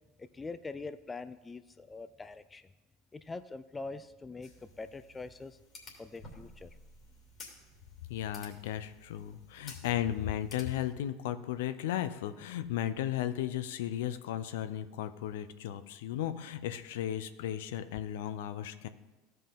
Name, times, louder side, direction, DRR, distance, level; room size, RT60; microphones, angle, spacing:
voice 1, 0.2-2.6 3.1-4.5 4.8-5.6 6.0-6.7, left 3 dB, 20° left, 13 dB, 0.4 m, -43 dB
sound 1, 4.4-10.9, left 2 dB, 35° left, 2.7 m, -54 dB
voice 2, 8.1-18.9, left 11 dB, 70° left, 11 dB, 0.5 m, -35 dB
15.0 x 5.4 x 3.7 m, 1.1 s
hypercardioid pair, 75°, 0 cm